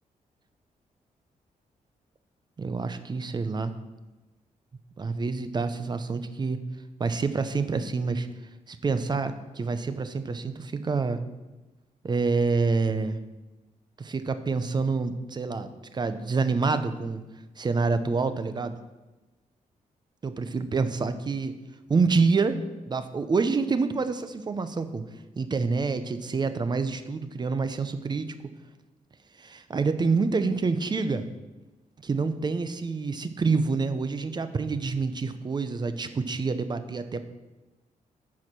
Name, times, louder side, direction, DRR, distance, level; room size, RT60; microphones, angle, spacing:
voice 1, 2.6-3.7 5.0-6.6 7.0-8.3 8.7-11.2 12.0-13.2 14.0-17.2 17.6-18.8 20.2-21.5 21.9-22.6 22.8-25.0 25.4-28.3 29.4-31.3 32.0-37.3, right 4 dB, 30° right, 10 dB, 0.6 m, -27 dB
9.7 x 4.7 x 6.1 m, 1.1 s
wide cardioid pair, 130°, 14 cm